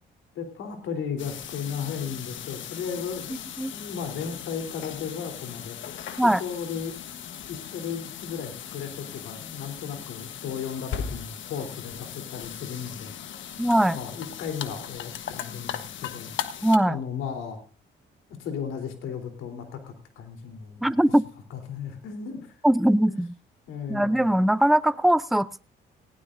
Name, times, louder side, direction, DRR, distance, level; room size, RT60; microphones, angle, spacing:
voice 1, 0.4-7.0 7.5-13.5 13.8-16.3 16.8-17.6 18.4-20.9 21.5-22.6 23.0-23.2 23.7-24.3, left 7 dB, 90° left, 5 dB, 3.6 m, -35 dB
sound 1, 1.2-16.8, left 9 dB, 75° left, 1.3 m, -38 dB
voice 2, 13.6-14.0 16.6-17.0 20.8-21.2 22.6-23.3 23.9-25.6, right 1 dB, ahead, 16 dB, 0.5 m, -21 dB
19.5 x 16.5 x 2.6 m, 0.38 s
cardioid pair, 90°, 20 cm